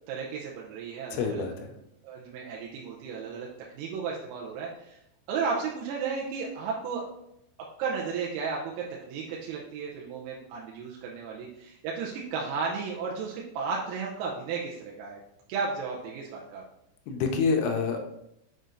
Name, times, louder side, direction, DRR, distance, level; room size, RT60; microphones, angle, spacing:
voice 1, 0.1-1.4 2.0-3.5 3.7-5.0 5.3-7.0 7.8-15.2 15.5-16.6, right 5 dB, 85° right, -3 dB, 3.5 m, -34 dB
voice 2, 1.1-1.7 17.1-18.0, left 5 dB, 80° left, 3 dB, 3.0 m, -27 dB
7.9 x 6.3 x 2.7 m, 0.81 s
omnidirectional pair, 6.0 m